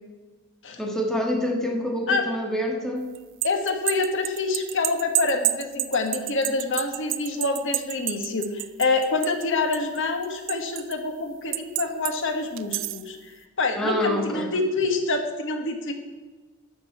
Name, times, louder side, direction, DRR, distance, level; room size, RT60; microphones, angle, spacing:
voice 1, 0.8-3.1 13.8-14.5, equal, ahead, 1 dB, 1.5 m, -26 dB
sound 1, 3.2-9.5 9.7-10.9 11.5-12.1 12.6-13.1, right 16 dB, 65° right, 0.5 m, -29 dB
voice 2, 3.4-13.3 13.6-15.9, left 3 dB, 60° left, 5 dB, 1.3 m, -26 dB
12.5 x 5.3 x 8.3 m, 1.3 s
head